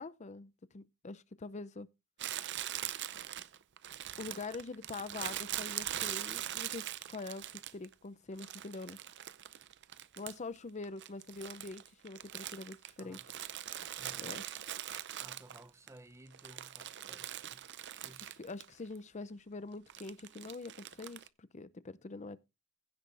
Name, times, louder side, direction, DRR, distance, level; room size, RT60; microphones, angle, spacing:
voice 1, 0.0-1.9 4.2-7.5 7.7-9.0 10.2-13.2 14.2-14.5 18.4-22.4, left 3 dB, 35° left, 0.6 m, -44 dB
Crumpling crinkling, 2.2-7.9 8.4-10.6 10.8-15.9 16.3-18.7 18.9-19.0 19.9-21.3, right 12 dB, 55° right, 0.6 m, -42 dB
voice 2, 13.0-13.3 14.0-14.3 15.2-17.7 18.0-18.4, right 1 dB, 15° right, 0.7 m, -57 dB
15.5 x 6.2 x 3.4 m
head